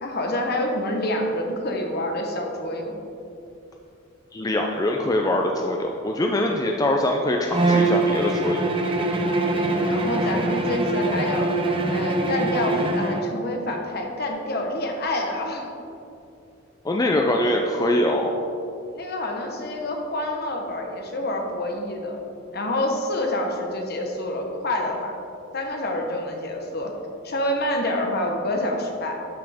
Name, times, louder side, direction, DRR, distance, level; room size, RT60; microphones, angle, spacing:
voice 1, 0.0-3.0 9.5-11.6 11.9-15.7 18.9-22.2 22.5-25.2 25.5-26.9 27.2-29.2, left 1 dB, 55° left, 2 dB, 1.1 m, -27 dB
voice 2, 4.3-8.7 16.8-18.3, left 1 dB, 20° left, 2 dB, 0.4 m, -23 dB
Bowed string instrument, 7.5-13.3, right 2 dB, 25° right, 0.6 m, -23 dB
12.0 x 5.7 x 3.5 m, 2.6 s
head